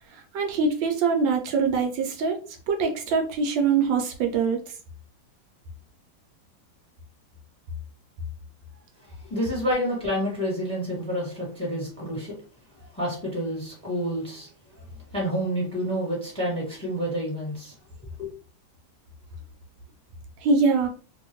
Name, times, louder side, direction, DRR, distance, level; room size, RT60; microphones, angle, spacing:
voice 1, 0.1-2.4 2.7-4.6 20.4-20.9, right 5 dB, 80° right, 1.3 m, -23 dB
voice 2, 9.0-12.3 12.9-14.8 15.1-17.7 18.2-18.3, equal, 5° left, 1.3 m, -29 dB
2.9 x 2.7 x 2.9 m
omnidirectional pair, 2.1 m